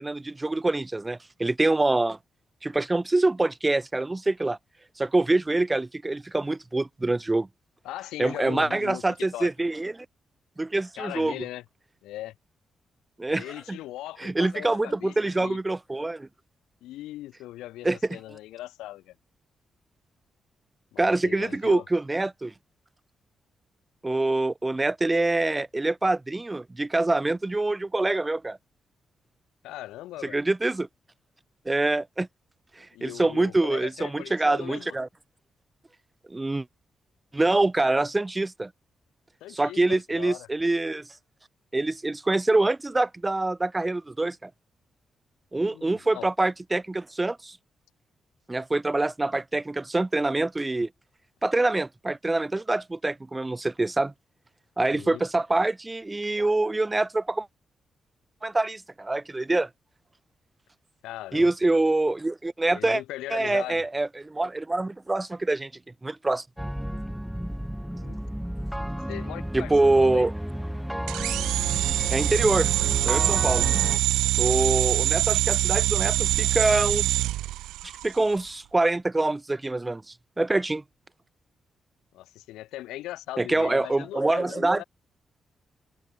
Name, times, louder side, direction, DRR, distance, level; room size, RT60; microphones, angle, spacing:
voice 1, 0.0-2.2 2.6-4.6 5.0-7.5 8.2-10.1 10.6-11.3 13.2-13.8 14.2-16.3 17.8-18.0 21.0-22.5 24.0-28.6 30.3-30.9 31.6-32.3 32.8-35.1 36.3-36.7 37.3-38.7 39.5-41.1 41.7-44.5 45.5-47.6 48.5-50.9 51.4-54.1 54.8-57.5 58.4-59.7 61.3-63.0 63.3-65.7 66.0-66.4 69.5-70.3 72.1-72.7 73.0-73.6 74.4-77.1 77.8-80.0 80.4-80.8 83.4-84.8, right 2 dB, 25° right, 2.6 m, -25 dB
voice 2, 7.8-9.5 11.0-11.6 12.0-12.4 13.3-15.6 16.8-19.1 20.9-21.9 29.6-30.4 32.9-35.0 39.4-40.5 45.5-46.3 54.9-55.2 61.0-61.5 62.7-63.8 68.0-68.2 69.1-70.3 74.3-74.9 82.1-84.8, left 15 dB, 85° left, 6.9 m, -39 dB
sound 1, 66.6-74.0, equal, 5° right, 5.0 m, -32 dB
sound 2, 71.1-78.2, right 15 dB, 85° right, 1.1 m, -24 dB
open air
supercardioid pair, 50°, 0 cm